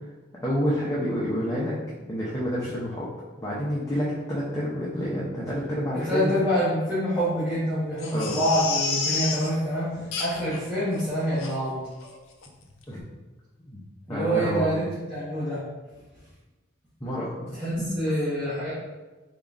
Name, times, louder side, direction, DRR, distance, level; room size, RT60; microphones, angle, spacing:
voice 1, 0.4-1.8 2.1-3.1 3.4-6.4 8.1-8.4 12.9-13.0 13.6-13.8 14.1-14.8 17.0-17.3, equal, 15° left, -7 dB, 0.5 m, -28 dB
voice 2, 6.0-9.9 10.2-11.8 14.1-15.6 17.6-18.7, equal, 10° right, -13 dB, 1.0 m, -26 dB
Crying sobbing, 8.0-9.5 10.1-10.6 11.0-11.1 11.4-11.5 12.0-12.2 12.4-12.5, left 5 dB, 80° left, 0.5 m, -30 dB
3.9 x 3.7 x 2.4 m, 1.2 s
head